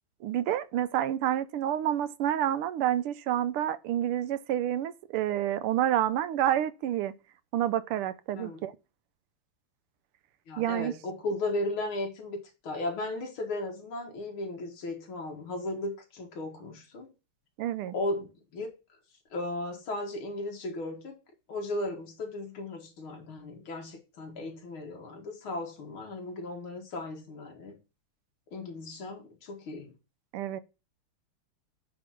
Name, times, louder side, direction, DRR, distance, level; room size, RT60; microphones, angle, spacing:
voice 1, 0.2-7.1 7.5-8.7 10.6-10.9 17.6-17.9 30.3-30.6, right 11 dB, 90° right, 1.6 m, -28 dB
voice 2, 10.5-17.1 17.9-18.7 19.3-21.1 21.5-27.8 28.5-29.9, left 2 dB, 70° left, 2.7 m, -36 dB
8.6 x 3.8 x 5.9 m
omnidirectional pair, 2.4 m